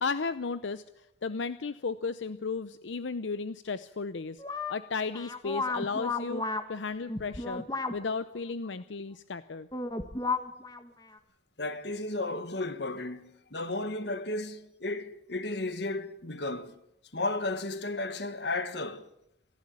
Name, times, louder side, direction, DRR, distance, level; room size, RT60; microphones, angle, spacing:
voice 1, 0.0-0.8 1.2-4.4 4.7-7.6 7.9-9.7, left 4 dB, 90° left, 0.7 m, -34 dB
sound 1, 4.4-4.7 5.1-6.6 7.1-7.9 9.7-10.9 11.1-11.2, left 3 dB, 20° left, 1.5 m, -33 dB
voice 2, 11.6-16.7 17.1-19.1, left 2 dB, 65° left, 1.7 m, -34 dB
25.5 x 11.5 x 8.6 m
head